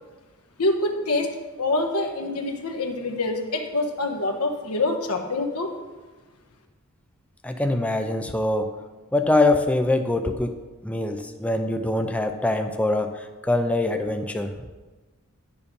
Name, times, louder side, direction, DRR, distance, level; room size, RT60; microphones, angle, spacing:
voice 1, 0.6-1.3 1.6-5.7, left 2 dB, 85° left, 3 dB, 1.4 m, -25 dB
voice 2, 7.4-8.7 9.1-10.5 10.8-14.5, left 2 dB, 5° left, 6 dB, 0.5 m, -23 dB
10.0 x 7.0 x 5.2 m, 1.3 s
head